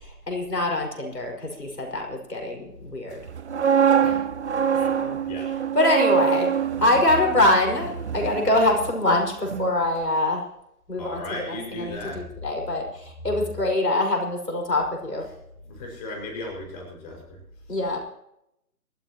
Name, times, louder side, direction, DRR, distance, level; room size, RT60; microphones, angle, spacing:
voice 1, 0.3-3.2 5.0-5.2 5.8-6.5 6.8-10.4 10.9-11.2 11.9-12.0 12.4-12.8 13.2-15.2 17.7-18.0, left 1 dB, 80° left, 1 dB, 5.7 m, -23 dB
sound 1, 3.3-9.2 9.5-9.7, right 8 dB, 45° right, 0.9 m, -24 dB
voice 2, 11.0-12.3 13.4-13.6 15.6-17.4 17.7-17.8, left 2 dB, 25° left, 0 dB, 5.6 m, -36 dB
28.5 x 13.5 x 3.0 m, 0.80 s
figure-of-eight pair, 150°, 47 cm